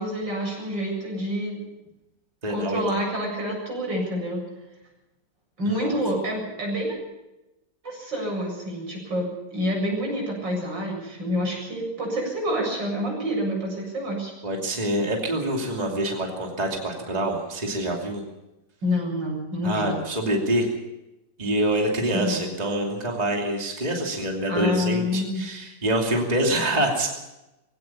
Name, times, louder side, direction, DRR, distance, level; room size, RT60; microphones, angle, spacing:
voice 1, 0.0-1.6 2.5-4.4 5.6-7.0 7.8-14.3 18.8-19.9 22.1-22.4 24.5-25.4, equal, 75° right, 0 dB, 8.5 m, -27 dB
voice 2, 2.4-3.0 5.6-6.0 14.4-18.2 19.6-20.7 21.4-27.1, right 1 dB, 20° right, 0 dB, 2.8 m, -26 dB
21.0 x 17.0 x 7.3 m, 0.96 s
omnidirectional pair, 2.0 m